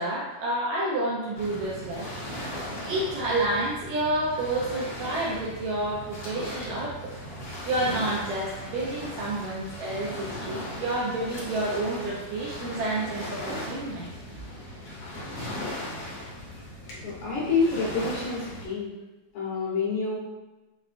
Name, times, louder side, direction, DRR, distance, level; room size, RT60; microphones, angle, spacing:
voice 1, 0.0-2.1 2.8-7.1 7.6-14.1, right 1 dB, 80° right, -5 dB, 1.8 m, -29 dB
Waves surf, 1.4-18.7, equal, 60° left, 1.6 m, -38 dB
voice 2, 17.0-18.9 19.3-20.2, left 4 dB, 80° left, -8 dB, 2.5 m, -27 dB
5.8 x 2.1 x 2.5 m, 1.1 s
omnidirectional pair, 3.5 m